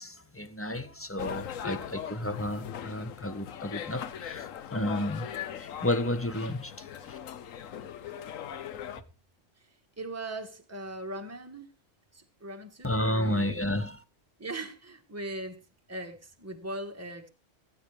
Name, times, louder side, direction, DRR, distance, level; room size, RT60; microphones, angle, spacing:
voice 1, 0.0-7.2 12.8-14.0, left 1 dB, 15° left, 0.7 m, -32 dB
sound 1, 1.2-9.0, left 9 dB, 90° left, 1.2 m, -40 dB
voice 2, 10.0-11.7 12.1-13.7 14.4-15.6 15.9-17.3, right 2 dB, 10° right, 1.3 m, -39 dB
18.5 x 8.8 x 3.3 m
omnidirectional pair, 1.3 m